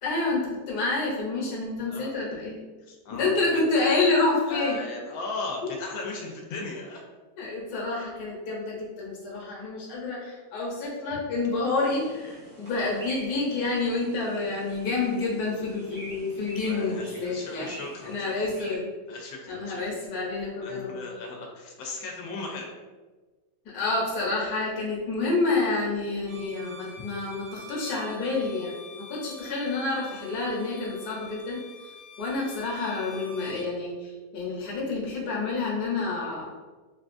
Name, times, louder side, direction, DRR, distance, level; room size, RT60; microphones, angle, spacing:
voice 1, 0.0-2.6 3.1-4.8 5.6-5.7 7.4-17.7 18.0-18.9 19.5-21.0 23.7-31.6 32.2-36.5, left 3 dB, 60° left, -4 dB, 1.3 m, -28 dB
voice 2, 2.8-3.6 4.5-7.0 11.1-11.2 12.3-12.4 16.6-18.3 19.1-19.8 20.6-22.7 27.0-27.1, left 3 dB, 90° left, 0 dB, 1.3 m, -37 dB
sound 1, 11.8-18.8, right 1 dB, 20° right, 0.5 m, -46 dB
Bowed string instrument, 26.2-33.7, left 2 dB, 80° right, 1.6 m, -47 dB
3.7 x 2.3 x 2.5 m, 1.3 s
omnidirectional pair, 2.0 m